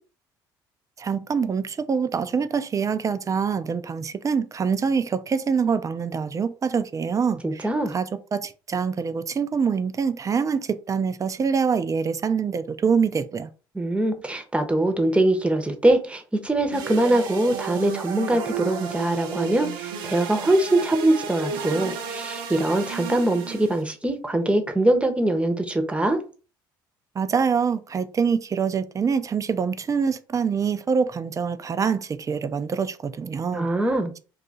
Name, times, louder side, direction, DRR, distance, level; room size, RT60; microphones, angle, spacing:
voice 1, 1.0-7.6 7.9-13.5 27.2-33.7, right 6 dB, 30° right, 0.4 m, -25 dB
voice 2, 7.4-7.9 13.7-26.2 33.5-34.1, right 1 dB, 10° right, 0.8 m, -22 dB
sound 1, 16.7-23.8, right 6 dB, 75° right, 0.7 m, -33 dB
2.7 x 2.4 x 3.9 m
hypercardioid pair, 60°, 11 cm